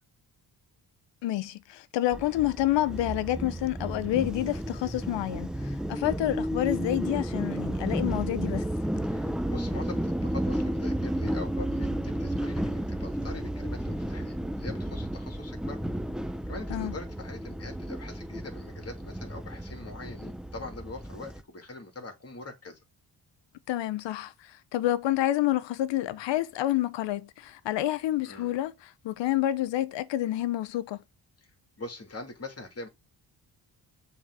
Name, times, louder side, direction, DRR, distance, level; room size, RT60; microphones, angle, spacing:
voice 1, 1.2-8.6 16.7-16.9 23.7-28.7 29.0-31.0, left 14 dB, 85° left, 0.8 m, -28 dB
sound 1, 2.1-21.4, right 1 dB, ahead, 0.6 m, -32 dB
voice 2, 9.1-15.8 16.5-22.8 28.2-28.5 31.4-31.5 31.8-32.9, left 3 dB, 35° left, 2.8 m, -43 dB
7.1 x 3.8 x 4.8 m
cardioid pair, 70°, 42 cm